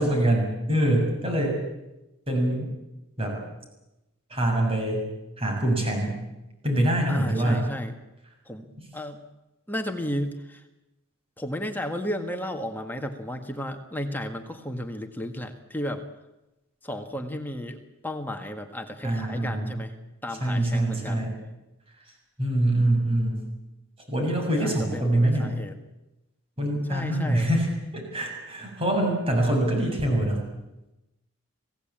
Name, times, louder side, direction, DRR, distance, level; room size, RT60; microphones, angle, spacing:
voice 1, 0.0-1.6 2.3-2.7 3.2-3.4 4.3-5.1 5.4-6.2 6.6-7.7 19.0-19.8 20.4-21.4 22.4-23.5 24.1-25.6 26.6-27.7 27.9-30.4, right 1 dB, 25° right, 1 dB, 7.1 m, -24 dB
voice 2, 7.1-7.9 8.5-8.7 8.9-9.2 9.7-10.6 11.4-16.0 16.8-19.9 20.2-21.2 24.6-25.8 26.9-27.5, equal, 10° left, 5 dB, 1.8 m, -33 dB
26.0 x 17.5 x 8.9 m, 0.97 s
head